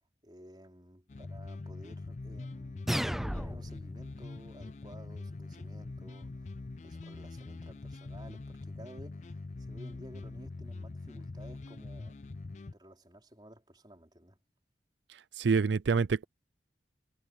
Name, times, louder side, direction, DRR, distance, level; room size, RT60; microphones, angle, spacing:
voice 1, 0.2-6.6 6.8-12.2 12.6-14.4, equal, 25° right, 4.5 m, -54 dB
sound 1, 1.1-12.7, left 3 dB, 40° left, 0.4 m, -43 dB
sound 2, 2.9-3.9, equal, ahead, 0.6 m, -33 dB
voice 2, 15.1-16.3, right 5 dB, 90° right, 0.5 m, -27 dB
head